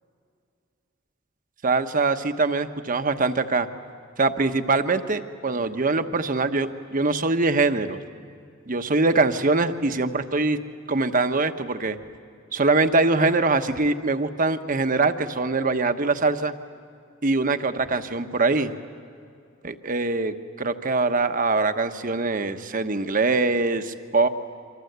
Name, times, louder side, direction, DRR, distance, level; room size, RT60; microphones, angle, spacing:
voice 1, 1.6-3.7 4.2-8.0 8.7-10.6 10.9-12.0 12.5-16.5 17.2-18.7 19.6-24.3, right 3 dB, 45° right, 8 dB, 1.1 m, -23 dB
28.0 x 25.0 x 8.1 m, 2.4 s
head